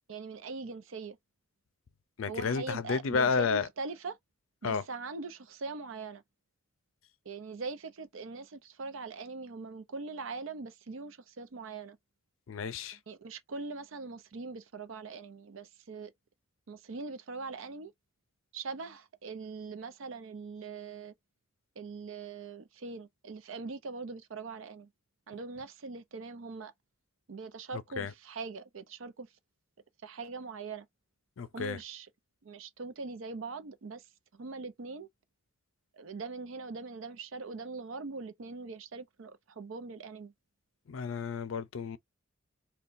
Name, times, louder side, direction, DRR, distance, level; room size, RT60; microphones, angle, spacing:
voice 1, 0.1-1.2 2.3-4.2 4.6-6.2 7.2-12.0 13.1-16.1 16.7-17.9 18.5-21.1 21.8-24.9 25.3-26.7 27.3-29.3 30.0-30.9 31.5-32.1 32.4-35.1 35.9-40.3, right 4 dB, 75° right, 0.6 m, -42 dB
voice 2, 2.2-3.7 4.6-4.8 12.5-13.0 28.0-28.1 31.4-31.8 40.9-42.0, left 5 dB, 75° left, 0.4 m, -31 dB
2.5 x 2.3 x 3.7 m
head